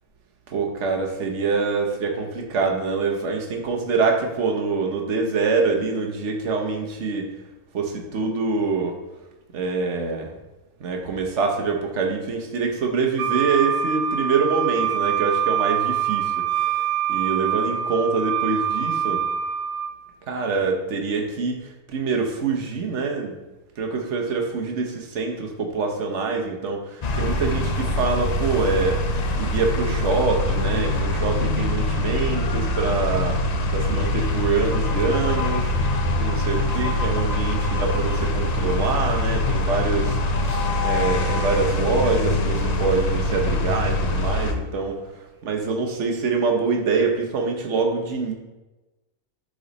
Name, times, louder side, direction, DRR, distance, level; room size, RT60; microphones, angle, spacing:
voice 1, 0.5-7.3 7.7-9.0 9.5-10.4 10.8-19.2 20.3-23.4 23.8-48.3, right 4 dB, 55° right, 2 dB, 1.2 m, -25 dB
Wind instrument woodwind instrument, 13.2-19.9, right 9 dB, 85° right, 1.1 m, -24 dB
sound 1, 27.0-44.5, left 1 dB, 80° left, 0.3 m, -23 dB
8.6 x 3.9 x 4.1 m, 1.1 s
omnidirectional pair, 1.5 m